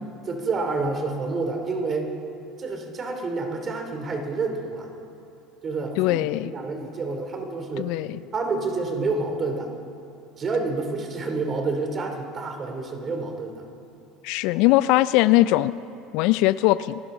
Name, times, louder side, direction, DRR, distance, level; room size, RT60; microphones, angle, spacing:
voice 1, 0.2-2.1 2.6-4.9 5.6-8.0 8.3-9.7 10.4-13.6, right 3 dB, 35° right, 4 dB, 2.8 m, -28 dB
voice 2, 6.0-6.5 7.8-8.2 14.2-15.7 16.1-17.0, left 17 dB, 65° left, 17 dB, 0.4 m, -20 dB
26.0 x 12.5 x 3.8 m, 2.8 s
hypercardioid pair, 75°, 0 cm